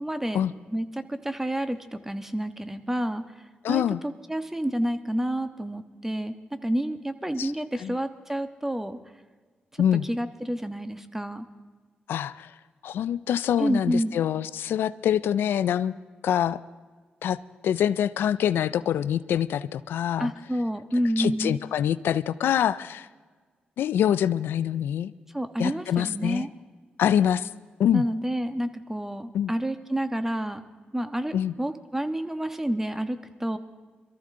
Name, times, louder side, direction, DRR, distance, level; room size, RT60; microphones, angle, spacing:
voice 1, 0.0-0.4 0.7-3.2 3.7-6.3 6.6-9.0 9.7-11.5 13.6-14.1 20.2-21.6 25.3-26.5 27.9-30.6 30.9-33.6, equal, 10° right, 10 dB, 1.3 m, -29 dB
voice 2, 3.6-4.0 7.4-7.5 7.8-7.9 9.8-10.0 12.1-12.5 12.8-15.9 16.2-16.6 17.2-17.4 17.6-20.3 21.2-23.1 23.8-25.1 25.6-26.5 27.0-27.5 27.8-28.0 29.3-29.5 31.3-31.5, left 10 dB, 85° left, 16 dB, 0.4 m, -25 dB
22.5 x 14.0 x 3.8 m, 1.4 s
cardioid pair, 65°, 4 cm